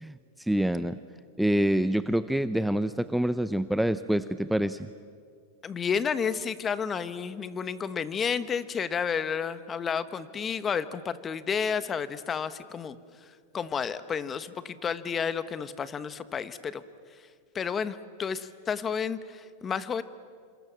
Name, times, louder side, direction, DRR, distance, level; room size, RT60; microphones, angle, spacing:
voice 1, 0.0-1.0 1.4-4.9, right 1 dB, ahead, 12 dB, 0.7 m, -26 dB
voice 2, 5.6-13.0 13.5-16.8 17.5-20.0, left 6 dB, 25° left, 14 dB, 1.2 m, -31 dB
28.0 x 26.5 x 7.5 m, 2.1 s
hypercardioid pair, 115°, 0 cm